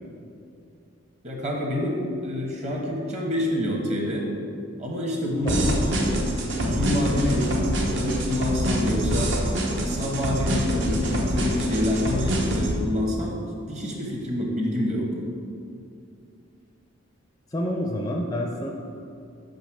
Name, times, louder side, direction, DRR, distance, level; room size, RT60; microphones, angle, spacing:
voice 1, 1.2-4.3 4.8-5.7 6.6-9.3 9.8-13.4 13.7-15.1, left 1 dB, 30° right, -1 dB, 1.2 m, -27 dB
voice 2, 5.4-6.3 17.5-18.7, equal, 15° left, 0 dB, 0.4 m, -29 dB
sound 1, 5.5-12.7, right 1 dB, 55° right, 0.9 m, -25 dB
5.8 x 5.2 x 6.1 m, 2.5 s
head